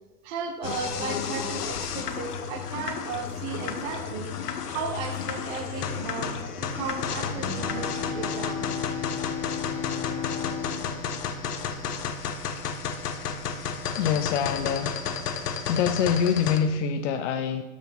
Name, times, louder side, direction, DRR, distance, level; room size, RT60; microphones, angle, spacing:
voice 1, 0.2-4.4 4.7-8.7, right 5 dB, 40° right, 4 dB, 1.0 m, -35 dB
sound 1, 0.6-16.6, left 6 dB, 85° left, 0.8 m, -32 dB
Bowed string instrument, 7.3-12.5, left 7 dB, 10° left, 0.6 m, -35 dB
voice 2, 13.9-15.0 15.3-17.6, left 7 dB, 55° left, 7 dB, 0.5 m, -25 dB
6.2 x 4.3 x 5.3 m, 1.1 s
hypercardioid pair, 135°, 46 cm